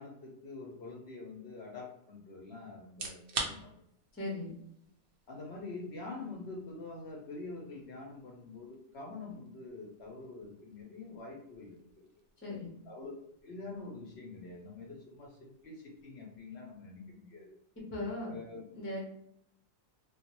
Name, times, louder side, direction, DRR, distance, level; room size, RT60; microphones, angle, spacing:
voice 1, 0.0-3.7 5.3-12.1 12.8-13.1 13.4-17.5 18.3-18.6, left 3 dB, 65° left, -2 dB, 0.7 m, -46 dB
sound 1, 2.8-17.7, right 3 dB, 80° right, 0.5 m, -49 dB
voice 2, 4.2-4.5 12.4-12.7 17.9-18.4 18.7-19.1, left 2 dB, 20° left, -3 dB, 0.3 m, -38 dB
2.3 x 2.0 x 2.9 m, 0.73 s
omnidirectional pair, 1.5 m